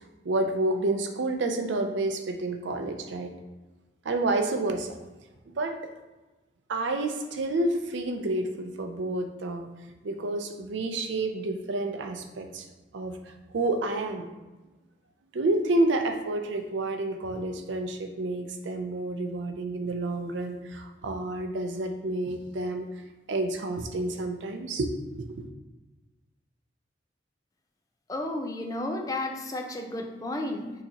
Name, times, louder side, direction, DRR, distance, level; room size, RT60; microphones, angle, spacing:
voice 1, 0.2-3.3 4.0-4.9 5.6-5.8 6.7-9.7 10.0-12.7 12.9-14.3 15.3-22.9 23.3-25.4, right 2 dB, 80° right, 6 dB, 0.5 m, -29 dB
voice 2, 28.1-30.7, left 1 dB, 20° left, 2 dB, 0.4 m, -32 dB
6.3 x 2.9 x 2.8 m, 1.2 s
head